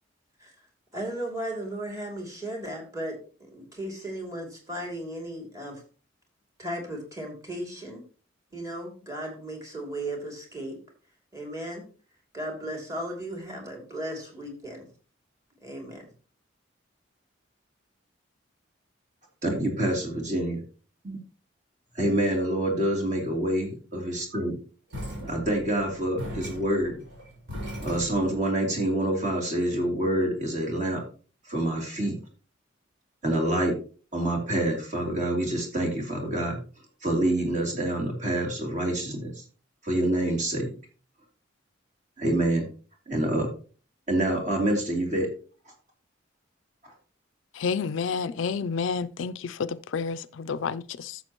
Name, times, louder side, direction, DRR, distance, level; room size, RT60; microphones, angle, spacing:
voice 1, 0.9-5.8 6.6-8.0 8.5-10.8 11.3-11.9 12.3-14.9 15.6-16.1, right 1 dB, 15° right, 2.6 m, -36 dB
voice 2, 19.4-20.6 21.0-21.2 21.9-24.5 25.2-27.0 27.8-31.0 31.5-32.2 33.2-33.8 34.1-36.6 37.0-39.3 39.8-40.7 42.2-42.7 43.1-43.5 44.1-45.3, right 1 dB, 35° right, 3.1 m, -26 dB
sound 1, 24.9-28.4, equal, 65° right, 5.2 m, -39 dB
voice 3, 47.5-51.2, left 5 dB, 80° left, 0.4 m, -30 dB
13.0 x 7.1 x 3.0 m
head